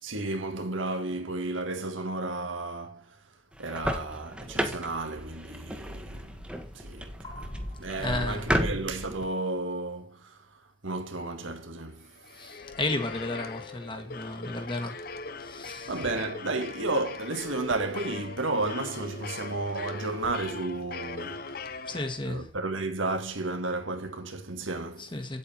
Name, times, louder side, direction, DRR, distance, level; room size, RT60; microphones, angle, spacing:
voice 1, 0.0-3.2 3.6-7.5 7.8-12.1 15.7-21.7 22.2-25.2, right 2 dB, 85° right, 1.8 m, -33 dB
sound 1, 3.5-9.2, equal, 5° right, 1.3 m, -33 dB
voice 2, 7.2-8.5 12.3-15.0 15.4-15.9 21.8-22.5 25.0-25.4, left 2 dB, 25° left, 1.7 m, -34 dB
sound 2, 12.0-22.5, left 4 dB, 50° left, 0.8 m, -41 dB
9.1 x 8.4 x 4.4 m
head